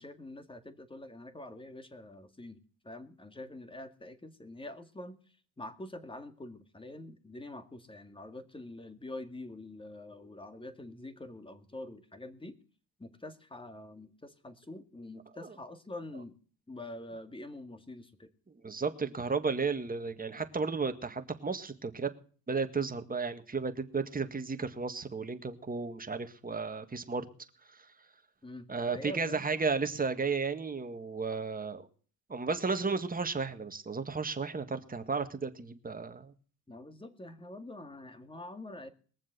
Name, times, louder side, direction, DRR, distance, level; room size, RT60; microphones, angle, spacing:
voice 1, 0.0-12.6 13.0-16.4 16.7-18.3 28.4-29.5 36.7-38.9, left 2 dB, 15° left, 9 dB, 2.0 m, -46 dB
voice 2, 18.6-22.1 22.5-27.3 28.7-31.9 32.3-36.3, right 4 dB, 20° right, 7 dB, 1.8 m, -33 dB
21.5 x 7.3 x 6.8 m, 0.42 s
cardioid pair, 95°, 39 cm